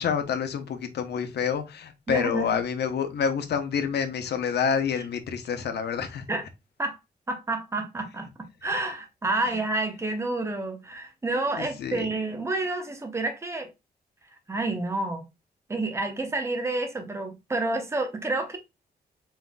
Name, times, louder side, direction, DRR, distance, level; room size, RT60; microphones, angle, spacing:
voice 1, 0.0-6.2 11.5-12.1, left 7 dB, 85° left, 0.8 m, -28 dB
voice 2, 2.1-2.5 6.3-6.4 6.8-7.0 7.3-8.3 8.6-13.7 14.5-15.2 15.7-18.6, right 2 dB, 15° right, 0.8 m, -29 dB
4.3 x 4.0 x 2.2 m
wide cardioid pair, 175°, 17 cm